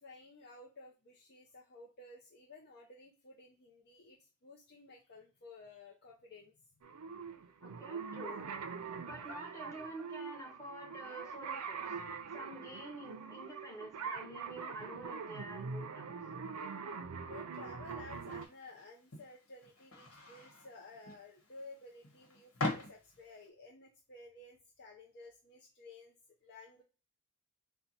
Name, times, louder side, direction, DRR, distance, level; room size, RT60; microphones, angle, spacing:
voice 1, 0.0-6.6 7.2-7.3 17.3-26.1 26.4-26.8, left 3 dB, 50° left, -2 dB, 0.6 m, -54 dB
sound 1, 6.8-18.5, right 5 dB, 85° right, 0.5 m, -43 dB
voice 2, 7.6-8.5 9.1-11.8 12.3-16.2, right 1 dB, 15° left, -2 dB, 1.4 m, -48 dB
sound 2, 18.1-23.5, left 2 dB, 70° left, 1.3 m, -43 dB
4.5 x 2.2 x 4.0 m, 0.34 s
head